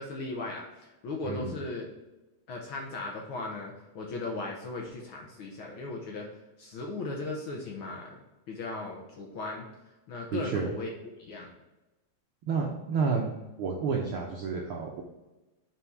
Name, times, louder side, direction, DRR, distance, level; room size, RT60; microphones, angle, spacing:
voice 1, 0.0-1.9 2.5-6.3 6.6-9.7 10.1-10.9 11.2-11.5, left 2 dB, 75° left, -1 dB, 1.2 m, -37 dB
voice 2, 1.2-1.6 10.3-10.7 12.5-13.3 13.6-15.0, right 5 dB, 85° right, -1 dB, 1.1 m, -30 dB
5.9 x 4.3 x 4.6 m, 1.1 s
omnidirectional pair, 3.5 m